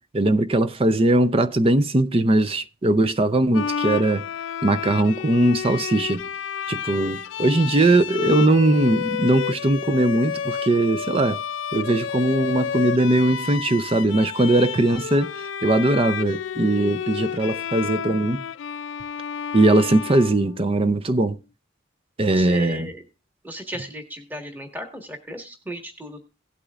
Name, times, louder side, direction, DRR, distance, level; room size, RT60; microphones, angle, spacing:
voice 1, 0.1-4.2 4.6-6.2 6.7-11.4 11.7-15.3 15.6-18.4 19.5-21.4 22.2-22.9, right 2 dB, 30° right, 0.5 m, -20 dB
Bowed string instrument, 3.5-21.0, left 7 dB, 70° left, 0.4 m, -30 dB
voice 2, 22.3-23.0 23.4-26.2, equal, 10° right, 1.6 m, -35 dB
17.5 x 8.3 x 2.4 m
head